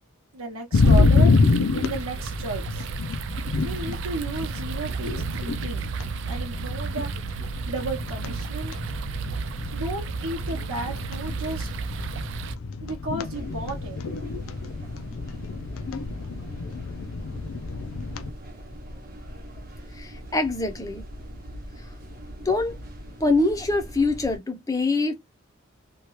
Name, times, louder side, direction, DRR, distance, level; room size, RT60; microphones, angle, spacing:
voice 1, 0.3-2.9 3.6-5.8 6.3-7.1 7.7-8.7 9.7-12.1 12.8-14.0, right 2 dB, 85° right, 0.9 m, -33 dB
sound 1, 0.7-18.3, left 3 dB, 75° left, 0.4 m, -27 dB
sound 2, 0.7-12.6, right 5 dB, 60° right, 0.3 m, -33 dB
sound 3, 13.2-24.4, equal, 40° right, 0.9 m, -41 dB
voice 2, 19.9-21.0 22.5-22.7 23.2-25.2, left 2 dB, 15° left, 0.5 m, -24 dB
2.8 x 2.3 x 3.0 m
head